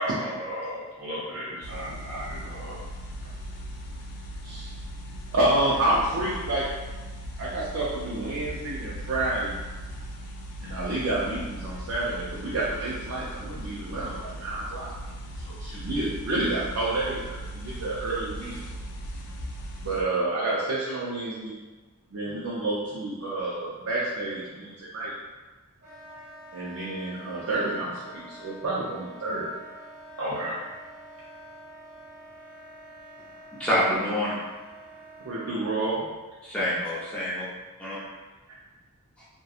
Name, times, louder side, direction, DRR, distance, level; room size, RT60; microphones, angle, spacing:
voice 1, 0.0-2.8 30.2-30.6, equal, 85° right, -7 dB, 1.1 m, -33 dB
sound 1, 1.6-20.0, equal, 90° left, 0.4 m, -38 dB
voice 2, 5.3-6.7 7.4-9.6 10.6-14.9 15.4-18.6 19.8-21.5 22.1-25.1 26.5-29.5 35.2-36.1 38.0-38.1, right 2 dB, 65° right, -6 dB, 0.5 m, -29 dB
Wind instrument woodwind instrument, 25.8-35.9, right 1 dB, 40° right, 0.8 m, -47 dB
voice 3, 33.6-34.4 36.4-37.4 37.8-38.0 39.2-39.3, equal, 5° left, -8 dB, 0.5 m, -26 dB
2.7 x 2.2 x 2.3 m, 1.2 s
head